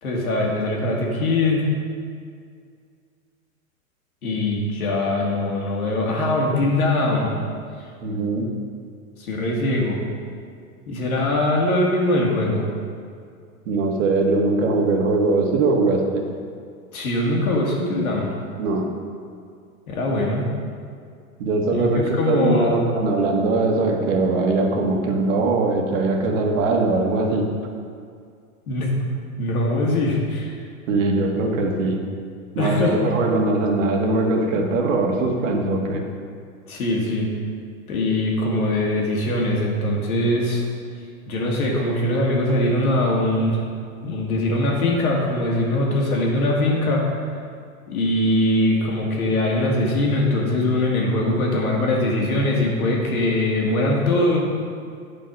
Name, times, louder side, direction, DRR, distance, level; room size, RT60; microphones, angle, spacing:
voice 1, 0.0-1.7 4.2-7.4 9.2-10.0 10.9-12.7 16.9-18.3 19.9-20.5 21.7-22.8 28.7-28.9 29.4-30.6 32.6-33.0 36.7-37.3 37.9-40.6 41.3-43.6 44.0-47.0 47.9-54.4, left 1 dB, 80° left, -2 dB, 2.2 m, -22 dB
voice 2, 8.0-8.5 13.7-16.2 18.6-18.9 21.4-27.5 30.9-32.1 32.5-36.0, right 3 dB, 60° right, 2 dB, 1.5 m, -21 dB
8.7 x 5.3 x 5.1 m, 2.2 s
hypercardioid pair, 120°, 43 cm